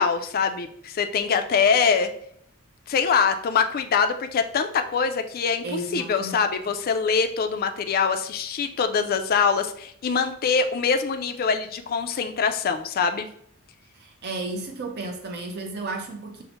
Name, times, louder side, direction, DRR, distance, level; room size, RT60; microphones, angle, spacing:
voice 1, 0.0-2.1 2.9-5.6 5.9-13.3, left 5 dB, 45° left, 7 dB, 0.4 m, -23 dB
voice 2, 5.6-6.5 13.9-16.4, right 2 dB, 50° right, 3 dB, 0.6 m, -33 dB
5.5 x 2.0 x 2.9 m, 0.66 s
head